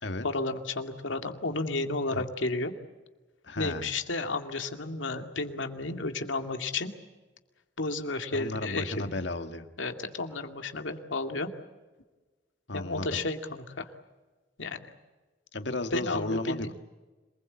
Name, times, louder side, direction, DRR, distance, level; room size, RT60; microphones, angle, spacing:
voice 1, 0.2-2.7 3.6-6.9 7.8-9.2 9.8-11.5 12.7-13.9 14.6-14.8 15.9-16.7, left 3 dB, 90° left, 5 dB, 2.2 m, -32 dB
voice 2, 3.4-3.9 8.3-9.7 12.7-13.2 15.5-16.7, left 2 dB, 70° left, 8 dB, 1.7 m, -34 dB
26.5 x 20.5 x 8.5 m, 1.2 s
head